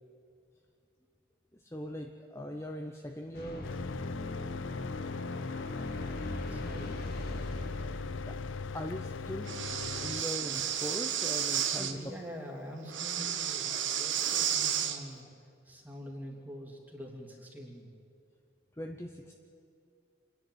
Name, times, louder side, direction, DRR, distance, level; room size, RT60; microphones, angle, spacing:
voice 1, 1.6-3.7 8.3-8.4 8.7-9.5 10.0-12.0 18.8-19.3, equal, 15° left, 2 dB, 0.8 m, -40 dB
sound 1, 3.3-10.0, left 1 dB, 50° left, 2.1 m, -40 dB
Mechanical fan, 3.6-10.2, left 5 dB, 85° left, 0.5 m, -40 dB
voice 2, 6.4-6.9 11.6-15.2 15.7-17.9, equal, 10° right, 0 dB, 2.6 m, -45 dB
Breathing, 9.5-11.9 12.9-15.0, right 9 dB, 75° right, 1.3 m, -32 dB
27.5 x 10.5 x 9.3 m, 2.4 s
head